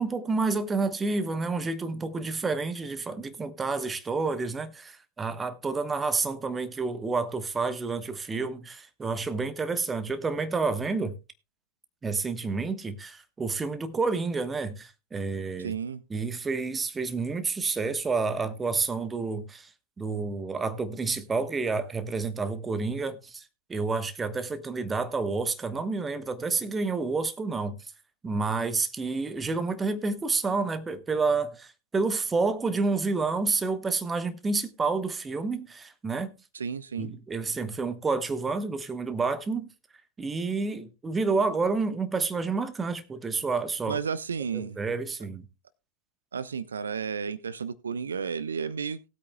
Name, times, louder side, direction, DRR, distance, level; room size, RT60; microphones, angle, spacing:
voice 1, 0.0-11.1 12.0-15.7 16.1-19.7 20.0-23.4 23.7-27.8 28.2-36.3 37.0-39.7 40.2-44.0 44.5-45.5, right 4 dB, 15° right, 1.2 m, -29 dB
voice 2, 15.6-16.0 36.5-37.1 43.9-44.8 46.3-49.1, right 6 dB, 70° right, 0.5 m, -32 dB
19.0 x 8.5 x 2.2 m
figure-of-eight pair, 90°, 0 cm